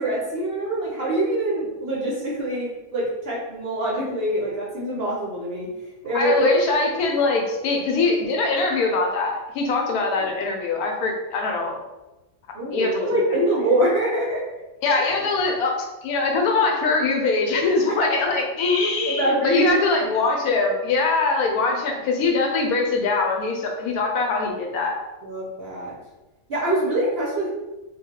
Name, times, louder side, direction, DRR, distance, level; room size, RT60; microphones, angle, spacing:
voice 1, 0.0-5.7 6.0-6.5 12.5-14.4 19.1-19.8 25.2-25.9 26.5-27.5, right 1 dB, 55° right, -4 dB, 0.7 m, -24 dB
voice 2, 6.1-11.8 12.7-13.1 14.8-25.0, left 3 dB, 85° left, 1 dB, 1.1 m, -22 dB
3.0 x 2.2 x 2.8 m, 1.0 s
omnidirectional pair, 1.5 m